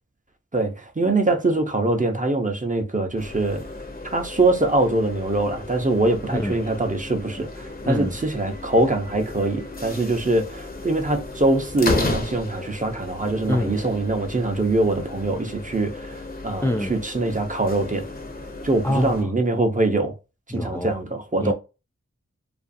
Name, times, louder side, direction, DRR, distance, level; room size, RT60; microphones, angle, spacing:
voice 1, 0.5-3.6 4.0-18.0 18.6-20.1 20.5-21.5, right 2 dB, 25° right, 0.7 m, -23 dB
sound 1, 3.2-19.2, left 2 dB, 30° left, 0.7 m, -34 dB
voice 2, 7.8-8.2 13.5-13.8 16.6-16.9 18.8-19.3 20.5-20.9 21.4-21.5, left 1 dB, 10° left, 0.3 m, -25 dB
2.5 x 2.3 x 2.6 m
cardioid pair, 40°, 29 cm